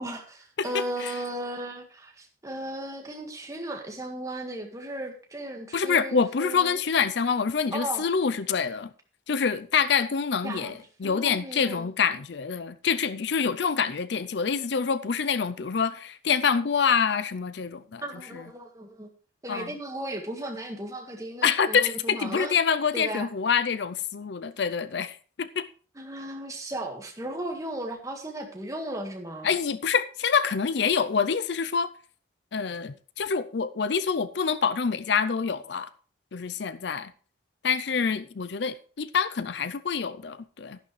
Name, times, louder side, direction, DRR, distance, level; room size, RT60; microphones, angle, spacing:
voice 1, 0.0-6.8 7.7-8.1 10.4-11.9 18.0-19.1 19.4-22.5 22.9-23.3 25.9-29.5, right 1 dB, 15° right, 1.7 m, -36 dB
voice 2, 0.6-1.2 5.7-8.9 9.3-18.0 18.3-18.4 19.5-19.8 21.4-25.7 29.4-31.9 32.5-35.9 36.3-37.1 37.6-40.8, left 6 dB, 60° left, 0.5 m, -26 dB
12.0 x 11.0 x 3.2 m
head